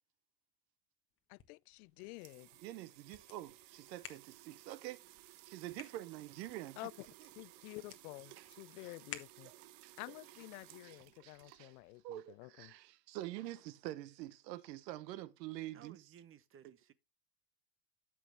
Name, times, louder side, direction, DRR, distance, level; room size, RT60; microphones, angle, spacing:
sound 1, 1.1-9.8, left 9 dB, 25° left, 1.3 m, -56 dB
voice 1, 1.3-2.5 6.8-7.1 7.4-9.5 10.0-12.7, left 23 dB, 65° left, 0.5 m, -50 dB
sound 2, 1.7-12.0, right 16 dB, 55° right, 0.9 m, -59 dB
voice 2, 2.6-5.1 5.5-6.8 8.4-8.5 8.8-8.9 9.4-9.9 10.8-11.8 12.0-16.0, right 15 dB, 80° right, 1.0 m, -46 dB
voice 3, 15.7-16.9, right 9 dB, 25° right, 0.9 m, -59 dB
12.5 x 6.1 x 3.5 m
supercardioid pair, 120°, 50 cm